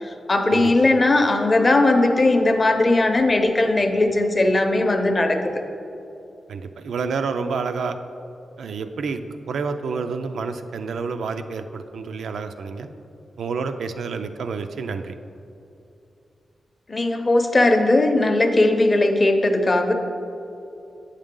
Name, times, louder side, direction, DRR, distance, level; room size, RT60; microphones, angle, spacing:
voice 1, 0.0-5.4 16.9-19.9, left 2 dB, 25° left, 5 dB, 0.6 m, -18 dB
voice 2, 6.5-8.0 8.6-9.2 9.5-12.9 13.4-15.1, right 5 dB, 85° right, 8 dB, 0.4 m, -29 dB
8.7 x 6.5 x 3.7 m, 2.7 s
wide cardioid pair, 145°, 0 cm